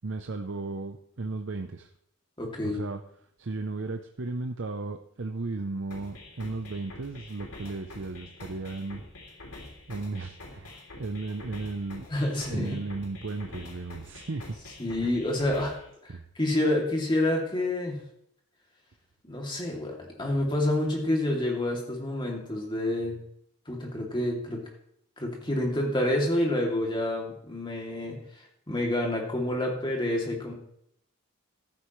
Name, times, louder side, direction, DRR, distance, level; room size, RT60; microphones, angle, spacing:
voice 1, 0.0-1.9 2.6-3.0 3.4-9.0 9.9-12.1 12.5-14.6 15.0-15.1 16.1-16.2, right 3 dB, 55° right, 6 dB, 0.7 m, -35 dB
voice 2, 2.4-2.8 12.1-12.8 14.8-15.7 16.0-18.0 19.2-23.2 23.7-24.6 25.2-28.2 28.7-30.5, left 1 dB, 20° left, 0 dB, 2.6 m, -28 dB
sound 1, 5.9-15.9, left 2 dB, 80° left, 3.2 m, -46 dB
14.5 x 12.0 x 3.2 m, 0.70 s
head